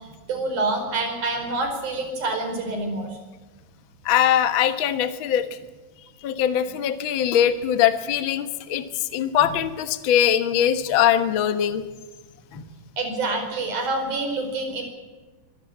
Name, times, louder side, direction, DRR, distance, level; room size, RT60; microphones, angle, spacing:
voice 1, 0.0-3.1 13.0-14.8, right 2 dB, 55° right, 4 dB, 6.0 m, -27 dB
voice 2, 4.0-5.5 6.2-11.8 12.5-12.6, left 10 dB, 65° left, 9 dB, 1.2 m, -21 dB
24.0 x 13.5 x 8.7 m, 1.3 s
omnidirectional pair, 4.3 m